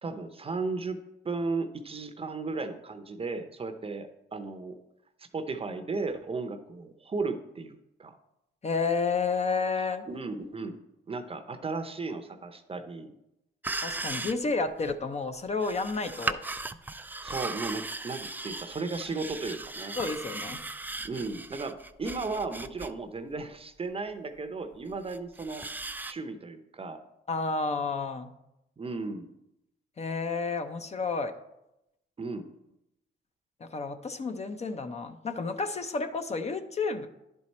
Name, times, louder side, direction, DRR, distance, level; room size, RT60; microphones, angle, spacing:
voice 1, 0.0-4.7 5.2-8.2 10.1-10.8 11.1-13.1 17.2-20.0 21.0-25.6 26.0-27.0 28.8-29.3 32.2-32.5, right 3 dB, 30° right, 9 dB, 0.7 m, -35 dB
voice 2, 8.6-10.1 13.8-16.4 20.0-20.6 27.3-28.3 30.0-31.3 33.6-37.1, left 4 dB, 35° left, 8 dB, 0.6 m, -31 dB
sound 1, 13.6-14.5 14.8-14.9 15.6-22.9 23.3-23.4 24.8-26.1, right 2 dB, 10° right, 0.3 m, -37 dB
10.5 x 4.6 x 4.2 m, 0.87 s
cardioid pair, 90°, 20 cm